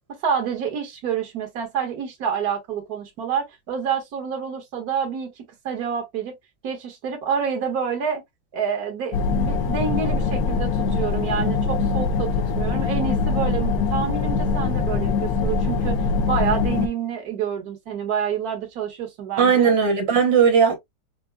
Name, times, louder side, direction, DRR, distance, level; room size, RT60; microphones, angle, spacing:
voice 1, 0.2-6.4 6.6-8.2 8.5-16.0 16.3-19.7, right 7 dB, 55° right, 1.7 m, -28 dB
sound 1, 9.1-16.9, left 4 dB, 75° left, 0.9 m, -23 dB
voice 2, 19.4-20.8, right 6 dB, 80° right, 1.6 m, -17 dB
5.9 x 2.1 x 2.2 m
omnidirectional pair, 2.0 m